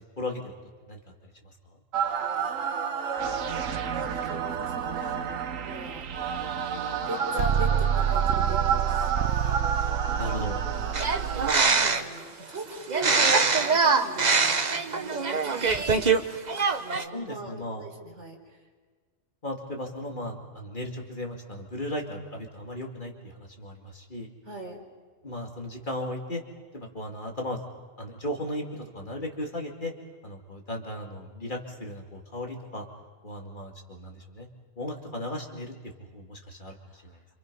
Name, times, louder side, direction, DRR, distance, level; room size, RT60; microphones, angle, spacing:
voice 1, 0.2-0.5 0.9-1.0 10.2-10.6 17.0-17.9 19.4-24.3 25.2-26.4 26.7-27.6 28.0-29.9 30.2-32.8 33.2-34.5 34.8-37.1, left 1 dB, 40° left, 1 dB, 2.6 m, -36 dB
sound 1, 1.9-11.5, right 8 dB, 85° right, 1.4 m, -28 dB
voice 2, 2.3-5.2 5.6-6.1 7.1-12.2 12.5-16.3 16.7-18.4 24.4-24.8 36.9-37.0, right 1 dB, 65° right, 0 dB, 4.5 m, -41 dB
sound 2, 10.9-12.2 12.9-16.2 16.5-17.0, right 4 dB, 35° right, 1.1 m, -23 dB
29.0 x 27.0 x 5.5 m, 1.5 s
omnidirectional pair, 1.3 m